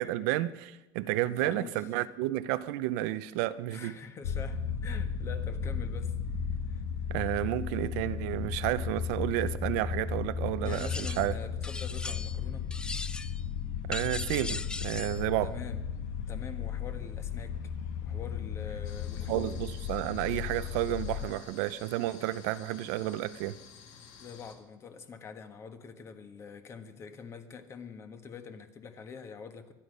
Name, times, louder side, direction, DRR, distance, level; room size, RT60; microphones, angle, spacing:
voice 1, 0.0-4.0 7.1-11.4 13.9-15.5 19.3-23.6, right 15 dB, 75° right, 0.7 m, -31 dB
voice 2, 1.1-1.9 3.7-6.2 6.7-6.8 10.6-12.7 15.4-15.8 16.3-17.7 18.0-19.6 24.2-29.7, left 6 dB, 30° left, 1.4 m, -45 dB
sound 1, 4.2-21.3, left 7 dB, 85° left, 1.7 m, -35 dB
sound 2, 10.6-11.3 11.6-12.4 12.7-13.4 13.9-15.2, left 3 dB, 10° left, 0.4 m, -39 dB
sound 3, 18.8-24.6, left 6 dB, 65° left, 2.3 m, -52 dB
24.0 x 10.0 x 5.4 m
cardioid pair, 140°, 9 cm